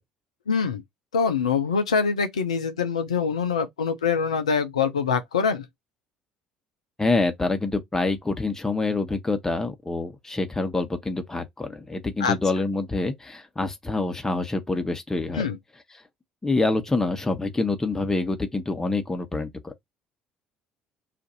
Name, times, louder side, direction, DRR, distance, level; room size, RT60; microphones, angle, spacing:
voice 1, 0.5-0.8 1.1-5.7 12.2-12.4 15.3-15.6, left 6 dB, 85° left, 0.4 m, -24 dB
voice 2, 7.0-15.5 16.4-19.9, left 3 dB, 15° left, 1.0 m, -26 dB
2.5 x 2.5 x 4.0 m
figure-of-eight pair, 55°, 3 cm